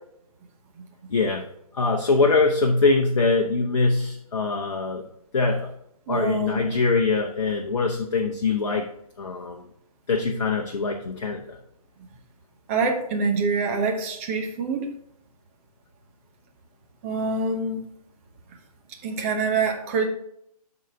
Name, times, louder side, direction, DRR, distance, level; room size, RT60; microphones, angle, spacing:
voice 1, 1.1-1.5 1.8-5.0 5.3-5.7 6.1-8.9 9.2-9.6 10.1-11.6, left 3 dB, 55° left, 2 dB, 0.9 m, -23 dB
voice 2, 6.1-6.7 12.7-14.9 17.0-17.8 19.0-20.1, right 4 dB, 20° right, 3 dB, 0.9 m, -25 dB
12.0 x 4.0 x 3.5 m, 0.75 s
figure-of-eight pair, 145°, 20 cm